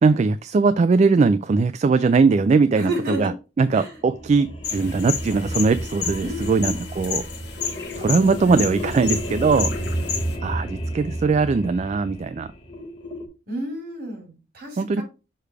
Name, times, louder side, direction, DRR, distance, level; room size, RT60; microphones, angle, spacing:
voice 1, 0.0-3.3 3.6-7.2 8.0-9.7 10.4-12.5 14.8-15.0, right 4 dB, 40° right, 12 dB, 0.3 m, -20 dB
voice 2, 2.7-3.3 3.7-3.9 6.2-6.8 9.5-9.8 13.5-15.0, right 1 dB, 55° right, 2 dB, 3.1 m, -31 dB
sound 1, 3.9-13.3, equal, 30° left, 1.2 m, -32 dB
sound 2, 4.6-10.4, left 7 dB, 65° left, 1.4 m, -31 dB
6.7 x 3.3 x 4.7 m, 0.30 s
head